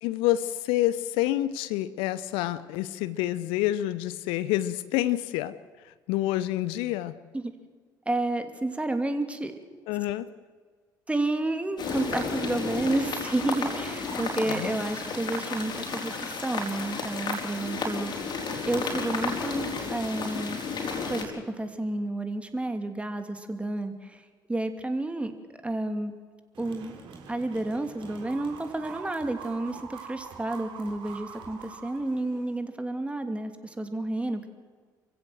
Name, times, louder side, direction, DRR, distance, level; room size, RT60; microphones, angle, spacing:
voice 1, 0.0-5.5 6.1-7.2 9.9-10.3 14.5-14.8, left 14 dB, 65° left, 16 dB, 0.7 m, -28 dB
voice 2, 8.1-9.5 11.1-18.1 18.7-20.6 21.1-24.2 24.5-25.3 25.6-26.1 26.6-27.0 27.3-34.5, right 2 dB, 10° right, 7 dB, 2.9 m, -30 dB
sound 1, 11.8-21.3, left 4 dB, 45° left, 4.5 m, -32 dB
sound 2, 26.5-32.6, right 5 dB, 55° right, 3.9 m, -44 dB
28.5 x 16.0 x 7.8 m, 1.5 s
figure-of-eight pair, 50°, 10 cm